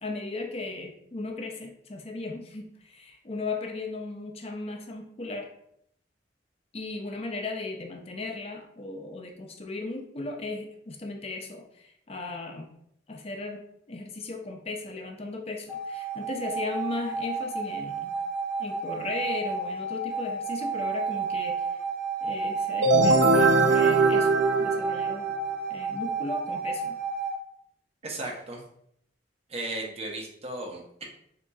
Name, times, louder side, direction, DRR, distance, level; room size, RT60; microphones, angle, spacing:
voice 1, 0.0-5.5 6.7-12.7 13.1-18.1 18.6-21.7 22.2-25.3 25.7-27.0, left 3 dB, 35° left, 3 dB, 0.6 m, -36 dB
sound 1, 15.7-27.4, right 4 dB, 5° right, 0.7 m, -31 dB
sound 2, 22.8-25.5, right 3 dB, 70° right, 0.5 m, -21 dB
voice 2, 28.0-28.6 29.5-31.0, right 2 dB, 35° right, 0 dB, 0.9 m, -35 dB
6.9 x 2.9 x 2.3 m, 0.70 s
head